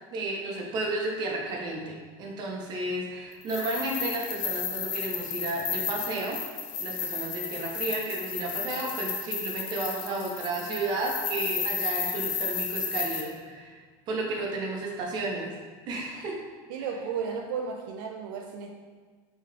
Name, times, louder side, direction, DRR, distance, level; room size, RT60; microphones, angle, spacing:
voice 1, 0.1-6.4 6.8-13.8 14.1-15.5 15.9-16.4, right 2 dB, 40° right, 0 dB, 0.7 m, -32 dB
sound 1, 3.4-13.2, left 6 dB, 50° left, 0.6 m, -33 dB
voice 2, 16.7-18.7, right 6 dB, 80° right, 2 dB, 0.4 m, -34 dB
3.8 x 3.0 x 3.2 m, 1.5 s
cardioid pair, 150°, 11 cm